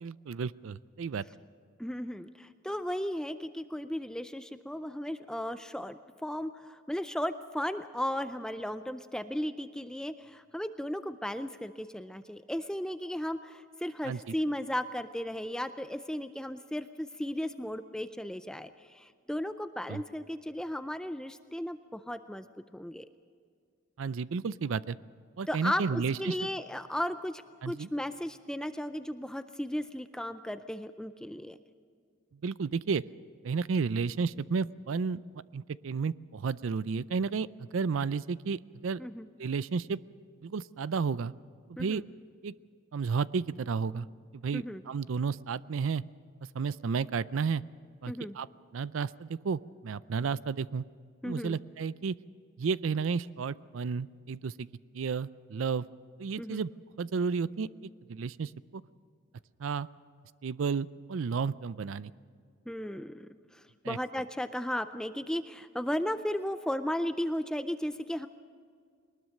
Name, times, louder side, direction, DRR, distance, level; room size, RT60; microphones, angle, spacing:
voice 1, 0.0-1.2 14.0-14.2 19.9-20.0 24.0-25.0 25.4-26.4 27.6-27.9 32.4-33.0 33.4-35.2 35.5-39.0 39.4-40.0 40.4-41.3 41.8-42.0 42.4-42.5 42.9-44.1 44.3-46.0 46.5-47.6 48.0-48.5 48.7-50.8 51.2-52.2 52.6-54.7 54.9-55.9 56.2-56.7 57.0-57.7 58.1-58.8 59.6-59.9 60.4-62.1 63.8-64.0, right 5 dB, 85° right, 18 dB, 0.4 m, -32 dB
voice 2, 1.8-22.5 22.7-23.1 25.5-31.6 39.0-39.3 41.8-42.1 44.5-44.8 48.1-48.4 51.2-51.6 56.4-56.6 62.7-68.3, equal, 5° left, 10 dB, 0.4 m, -35 dB
22.0 x 20.0 x 6.5 m, 2.2 s
head